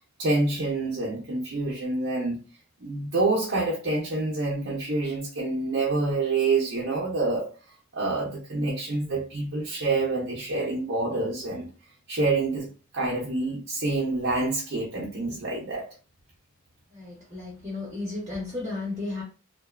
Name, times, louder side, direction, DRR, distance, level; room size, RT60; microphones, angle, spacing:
voice 1, 0.2-2.4 2.8-7.5 7.9-11.7 12.1-15.9, right 3 dB, 55° right, 0.6 m, -27 dB
voice 2, 16.9-19.2, left 2 dB, 15° right, 0.7 m, -34 dB
2.5 x 2.2 x 2.3 m
head